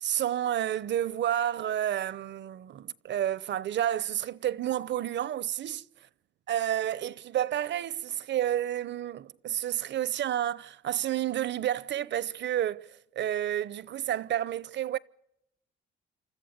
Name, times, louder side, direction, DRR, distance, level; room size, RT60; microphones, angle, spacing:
voice 1, 0.0-5.8 6.5-15.0, right 11 dB, 65° right, 0.8 m, -30 dB
28.5 x 14.0 x 8.1 m
cardioid pair, 90°, 20 cm